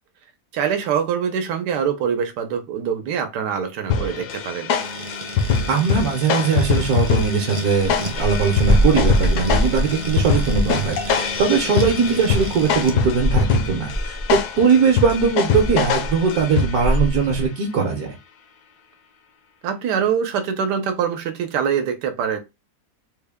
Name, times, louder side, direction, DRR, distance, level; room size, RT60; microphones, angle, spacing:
voice 1, 0.5-4.7 19.6-22.4, right 7 dB, 85° right, 1.3 m, -24 dB
sound 1, 3.9-17.1, left 6 dB, 75° left, 1.1 m, -24 dB
sound 2, 4.8-13.0, right 2 dB, 45° right, 0.4 m, -34 dB
voice 2, 5.7-18.1, right 5 dB, 70° right, 1.3 m, -20 dB
sound 3, 7.8-17.5, equal, 40° left, 0.5 m, -24 dB
4.0 x 2.2 x 3.4 m
omnidirectional pair, 1.7 m